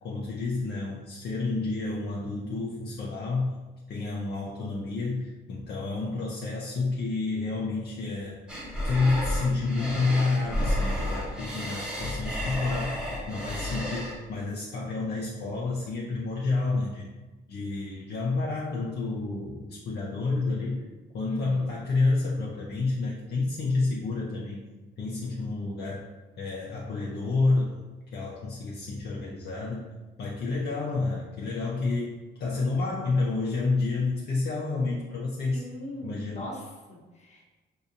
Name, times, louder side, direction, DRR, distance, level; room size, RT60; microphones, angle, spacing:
voice 1, 0.0-3.5 3.9-8.4 8.8-13.0 13.3-17.1 17.5-20.8 21.1-24.6 25.0-26.0 26.4-27.8 28.1-29.9 30.2-35.6 36.0-36.5, left 3 dB, 55° left, -4 dB, 0.6 m, -29 dB
sound 1, 8.5-14.1, left 1 dB, 5° right, 0.9 m, -31 dB
voice 2, 21.3-21.7 35.5-37.4, left 1 dB, 35° left, -3 dB, 0.9 m, -40 dB
4.0 x 2.7 x 2.5 m, 1.2 s
cardioid pair, 90°, 20 cm